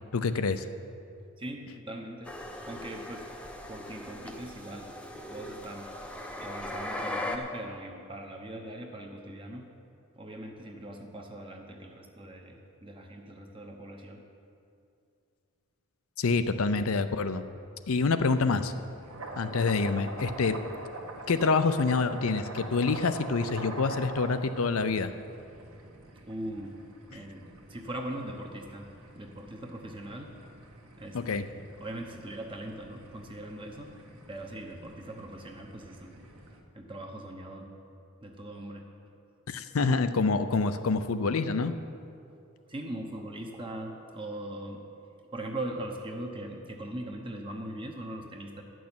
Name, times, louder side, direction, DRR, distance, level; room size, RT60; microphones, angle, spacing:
voice 1, 0.1-0.6 16.2-17.4 17.9-18.7 19.4-20.6 21.3-25.1 31.1-31.5 39.5-41.7, left 4 dB, 70° left, 10 dB, 0.6 m, -27 dB
voice 2, 1.4-2.3 2.7-3.3 3.7-4.9 5.3-5.9 6.4-9.7 10.2-14.2 26.3-26.8 27.1-28.9 29.2-30.3 31.0-33.9 34.3-36.1 36.7-37.7 38.2-38.8 42.7-44.8 45.3-48.6, right 1 dB, 25° right, 2 dB, 0.9 m, -40 dB
sound 1, 2.3-7.4, left 1 dB, 5° left, 0.7 m, -39 dB
sound 2, 18.2-36.6, right 2 dB, 80° right, 1.4 m, -45 dB
11.5 x 6.2 x 8.7 m, 2.6 s
head